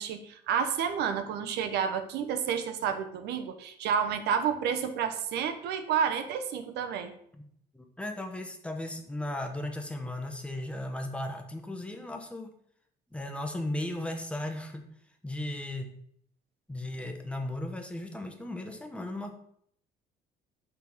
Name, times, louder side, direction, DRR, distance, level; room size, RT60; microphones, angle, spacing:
voice 1, 0.0-7.1, right 7 dB, 80° right, 8 dB, 0.8 m, -30 dB
voice 2, 7.7-12.5 13.1-14.9 15.2-16.0 16.7-19.3, left 1 dB, 5° left, 4 dB, 1.0 m, -36 dB
5.9 x 3.5 x 5.9 m, 0.67 s
cardioid pair, 110°, 17 cm